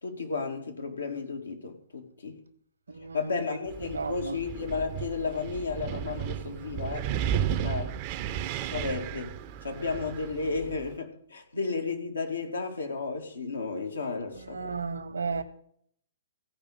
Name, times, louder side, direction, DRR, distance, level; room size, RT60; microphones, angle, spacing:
voice 1, 0.0-2.4 3.1-7.1 7.6-7.9 8.6-9.4 9.6-14.8, left 4 dB, 80° left, 2.4 m, -33 dB
voice 2, 2.9-3.6 3.9-4.4 14.4-15.4, right 4 dB, 75° right, 1.4 m, -34 dB
Wind, 3.7-11.0, right 9 dB, 35° right, 0.7 m, -34 dB
15.5 x 5.2 x 8.9 m
figure-of-eight pair, 115°, 0 cm